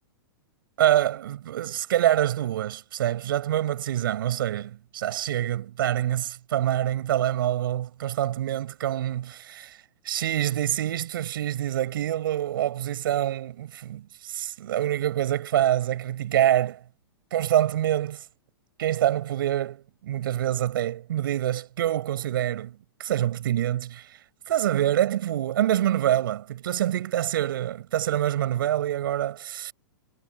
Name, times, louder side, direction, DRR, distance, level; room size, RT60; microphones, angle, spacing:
voice 1, 0.8-9.8 10.0-16.8 17.3-18.2 18.8-24.1 24.5-29.7, right 12 dB, 65° right, 7.6 m, -26 dB
hypercardioid pair, 110°, 12 cm